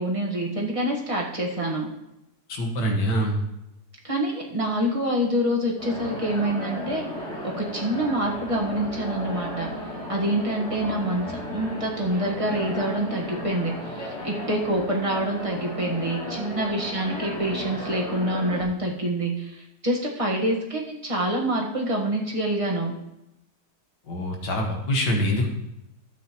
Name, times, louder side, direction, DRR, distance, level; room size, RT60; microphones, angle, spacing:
voice 1, 0.0-1.9 4.0-7.0 7.4-9.7 10.1-22.9, right 1 dB, 20° right, -2 dB, 1.4 m, -26 dB
voice 2, 2.5-3.4 24.1-25.5, equal, 90° left, 2 dB, 2.1 m, -24 dB
sound 1, 5.8-18.6, left 1 dB, 70° left, 3.0 m, -34 dB
12.5 x 8.3 x 3.1 m, 0.88 s
omnidirectional pair, 1.8 m